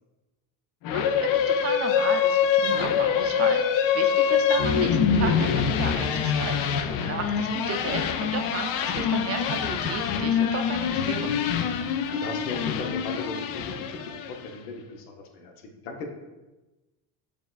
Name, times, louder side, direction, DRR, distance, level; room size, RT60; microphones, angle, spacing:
sound 1, 0.8-14.5, left 7 dB, 50° left, 0.4 m, -25 dB
voice 1, 0.9-11.4, right 6 dB, 35° right, 5 dB, 0.5 m, -34 dB
sound 2, 2.4-14.1, left 5 dB, 70° left, 1.3 m, -51 dB
voice 2, 12.0-16.1, left 3 dB, 85° left, 3 dB, 0.8 m, -37 dB
6.6 x 2.4 x 2.3 m, 1.1 s
hypercardioid pair, 80°, 45 cm